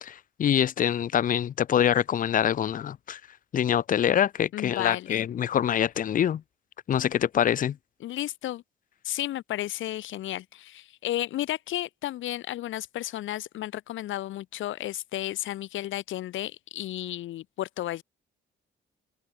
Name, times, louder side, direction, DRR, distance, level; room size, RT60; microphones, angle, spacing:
voice 1, 0.0-3.2 3.5-6.4 6.9-7.8, left 9 dB, 45° left, 0.5 m, -25 dB
voice 2, 4.5-5.3 8.0-8.6 9.0-18.0, left 14 dB, 80° left, 1.3 m, -33 dB
cardioid pair, 90°, 20 cm